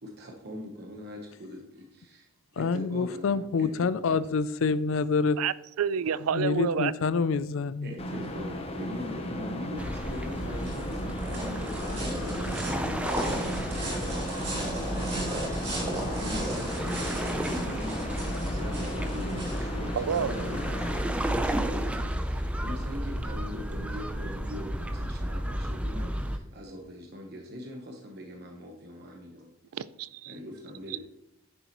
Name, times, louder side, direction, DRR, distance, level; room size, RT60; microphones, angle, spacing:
voice 1, 0.0-4.2 7.8-15.5 16.2-17.3 17.6-18.2 18.5-29.5 30.2-31.0, left 1 dB, 45° right, 1.1 m, -42 dB
voice 2, 2.6-5.4 6.3-7.9, left 4 dB, 60° left, 0.4 m, -27 dB
voice 3, 5.4-6.9 20.0-20.3 29.7-30.4, right 7 dB, 75° right, 0.3 m, -29 dB
sound 1, 8.0-21.0, left 1 dB, 25° left, 0.8 m, -36 dB
sound 2, 9.8-26.4, right 1 dB, 5° right, 0.4 m, -33 dB
sound 3, 10.1-21.0, right 1 dB, 30° right, 3.6 m, -36 dB
10.0 x 6.9 x 3.0 m
head